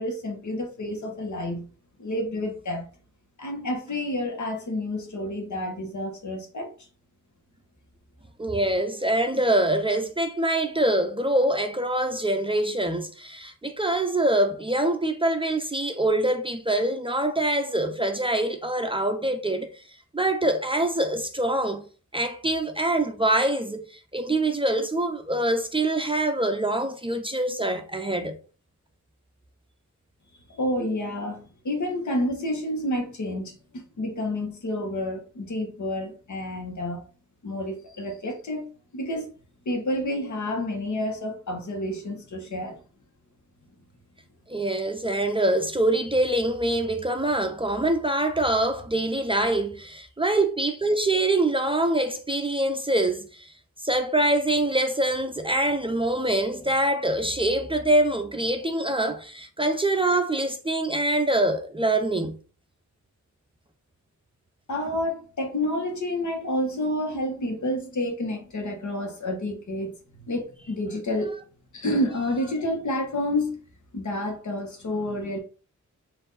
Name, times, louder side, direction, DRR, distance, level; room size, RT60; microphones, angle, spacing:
voice 1, 0.0-1.7 2.0-2.9 3.4-6.7 30.6-37.0 37.4-39.3 39.6-42.8 64.7-69.9 70.2-71.3 71.7-73.6 73.9-75.4, left 1 dB, 75° left, 1.3 m, -29 dB
voice 2, 8.4-19.7 20.1-21.8 22.1-28.4 44.5-53.5 53.8-62.4, right 1 dB, 20° right, 0.4 m, -24 dB
4.5 x 2.6 x 4.0 m
wide cardioid pair, 125°, 30 cm